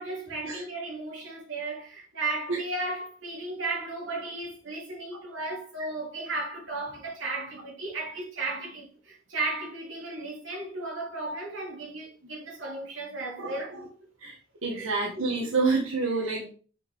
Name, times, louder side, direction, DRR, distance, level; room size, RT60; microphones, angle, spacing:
voice 1, 0.0-13.8 14.7-14.9 15.2-15.5, right 2 dB, 65° right, 4.0 m, -35 dB
voice 2, 13.4-13.9 14.2-14.4 14.6-16.5, right 3 dB, 85° right, 1.9 m, -28 dB
8.2 x 6.5 x 3.8 m
head